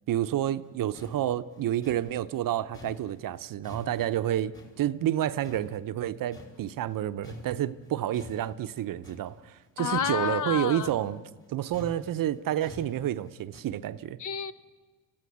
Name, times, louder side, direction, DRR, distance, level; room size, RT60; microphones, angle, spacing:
voice 1, 0.1-11.2 11.5-14.2, right 12 dB, 50° right, 12 dB, 0.8 m, -29 dB
sound 1, 0.7-0.8 0.9-5.2 5.4-7.0 7.2-13.6, left 2 dB, 30° left, 4.3 m, -48 dB
voice 2, 9.8-10.9 14.2-14.5, left 8 dB, 45° left, 13 dB, 1.0 m, -30 dB
26.5 x 15.5 x 9.4 m, 1.4 s
cardioid pair, 95°, 42 cm